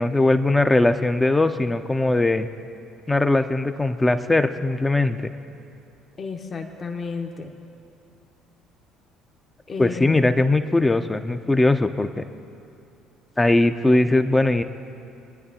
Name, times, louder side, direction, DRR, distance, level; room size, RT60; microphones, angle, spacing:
voice 1, 0.0-2.5 3.1-5.3 9.8-12.3 13.4-14.6, left 2 dB, 15° left, 9 dB, 0.6 m, -20 dB
voice 2, 6.2-7.5 9.7-10.3, left 4 dB, 35° left, 4 dB, 1.0 m, -32 dB
23.0 x 10.0 x 2.8 m, 2.7 s
figure-of-eight pair, 55°, 0 cm